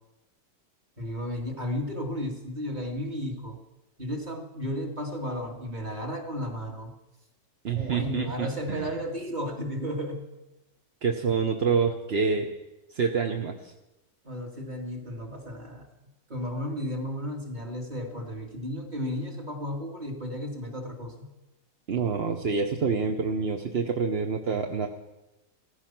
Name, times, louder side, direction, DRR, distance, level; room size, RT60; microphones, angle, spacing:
voice 1, 1.0-3.6 4.0-6.9 7.7-10.3 14.2-15.9 16.3-21.3, equal, 25° right, 1 dB, 2.4 m, -34 dB
voice 2, 7.6-9.0 11.0-12.5 12.9-13.7 21.9-24.9, right 5 dB, 45° right, 3 dB, 0.9 m, -27 dB
16.0 x 15.0 x 6.0 m, 1.0 s
omnidirectional pair, 1.9 m